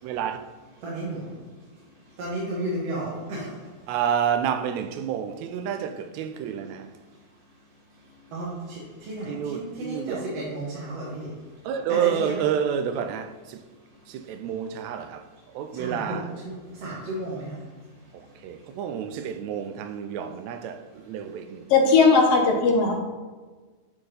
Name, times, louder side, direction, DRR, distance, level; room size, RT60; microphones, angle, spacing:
voice 1, 0.0-0.4 3.9-6.9 9.3-10.3 11.7-13.6 14.1-15.2 15.5-16.3 18.4-21.6, right 8 dB, 80° right, 1.8 m, -29 dB
voice 2, 0.8-1.5 2.2-3.8 8.0-11.6 11.9-12.4 14.2-14.3 15.7-18.3 18.9-19.0, right 1 dB, 60° right, 2.3 m, -34 dB
voice 3, 21.7-22.9, left 4 dB, 65° left, 1.8 m, -18 dB
9.6 x 4.3 x 3.4 m
omnidirectional pair, 3.3 m